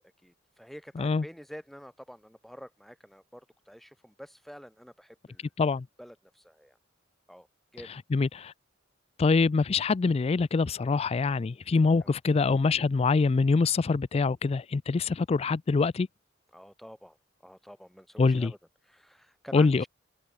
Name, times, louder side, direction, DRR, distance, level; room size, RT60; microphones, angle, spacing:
voice 1, 0.2-5.5 6.0-6.8 7.3-7.5 7.7-7.9 12.0-12.2 16.5-17.2 17.4-18.6 18.8-19.9, equal, ahead, 5.8 m, -48 dB
voice 2, 8.1-8.5 9.2-16.1 18.2-18.5 19.5-19.8, left 4 dB, 30° left, 0.3 m, -24 dB
head